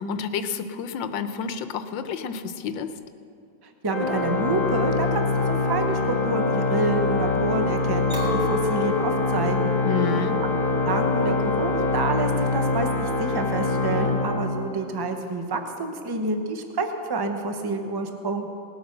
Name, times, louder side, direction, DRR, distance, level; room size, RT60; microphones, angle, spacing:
voice 1, 0.0-2.9 9.8-10.4, left 6 dB, 85° left, 10 dB, 1.5 m, -29 dB
voice 2, 3.8-9.7 10.4-10.5 10.8-18.5, right 3 dB, 25° right, 6 dB, 0.5 m, -28 dB
Organ, 3.9-15.1, left 3 dB, 35° left, 1.4 m, -24 dB
Chink clink, 8.1-13.5, left 5 dB, 45° right, 3.2 m, -32 dB
19.0 x 8.1 x 6.6 m, 2.5 s
omnidirectional pair, 2.0 m